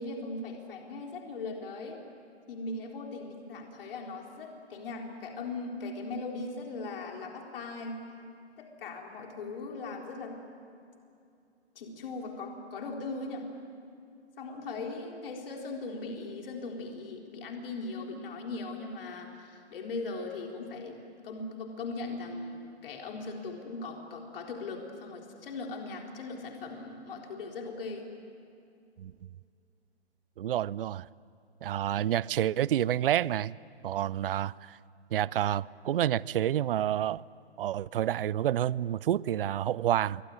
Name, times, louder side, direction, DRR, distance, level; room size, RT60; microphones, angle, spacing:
voice 1, 0.0-2.0 2.5-8.0 8.6-10.4 11.8-13.5 14.4-21.0 21.2-28.1, left 3 dB, 55° left, 4.0 m, -39 dB
voice 2, 30.4-31.1 31.6-33.5 33.8-34.8 35.1-37.2 37.6-40.2, right 11 dB, 55° right, 0.6 m, -29 dB
25.0 x 23.5 x 9.7 m
figure-of-eight pair, 130°, 33 cm